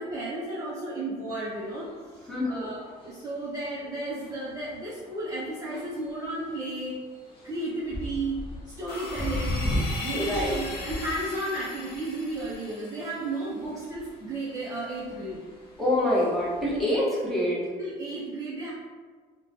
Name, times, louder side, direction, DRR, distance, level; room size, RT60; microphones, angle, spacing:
voice 1, 0.0-7.0 7.4-8.4 8.7-9.7 10.0-15.4 17.8-18.7, right 2 dB, 20° right, -9 dB, 0.5 m, -33 dB
sound 1, 1.3-16.9, left 1 dB, 35° left, 0.7 m, -39 dB
voice 2, 2.3-2.7 10.1-10.6 15.8-17.7, left 1 dB, ahead, -8 dB, 0.9 m, -26 dB
sound 2, 8.9-13.3, left 3 dB, 75° left, 0.7 m, -38 dB
2.9 x 2.2 x 2.6 m, 1.5 s
cardioid pair, 110°, 17 cm